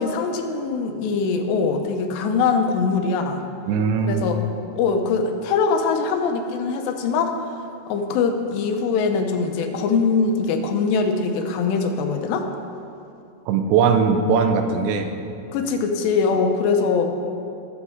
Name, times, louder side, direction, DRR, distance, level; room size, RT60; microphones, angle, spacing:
voice 1, 0.0-3.4 4.0-4.4 4.8-7.4 7.9-12.5 15.5-17.1, left 5 dB, 80° left, 5 dB, 2.9 m, -22 dB
voice 2, 3.7-4.3 13.5-15.1, right 5 dB, 90° right, 6 dB, 3.0 m, -20 dB
19.0 x 7.2 x 3.6 m, 2.6 s
omnidirectional pair, 4.9 m